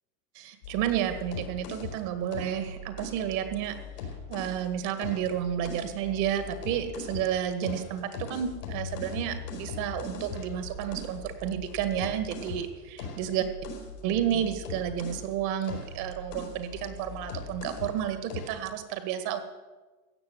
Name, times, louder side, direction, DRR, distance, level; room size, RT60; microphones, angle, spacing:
voice 1, 0.4-3.8 4.3-13.4 14.0-19.4, right 10 dB, 55° right, 8 dB, 2.0 m, -31 dB
sound 1, 0.6-4.6 5.0-7.3 7.6-15.3 15.6-18.0 18.3-18.6, left 4 dB, 90° left, 4.8 m, -40 dB
15.5 x 6.6 x 9.6 m, 1.3 s
supercardioid pair, 130°, 46 cm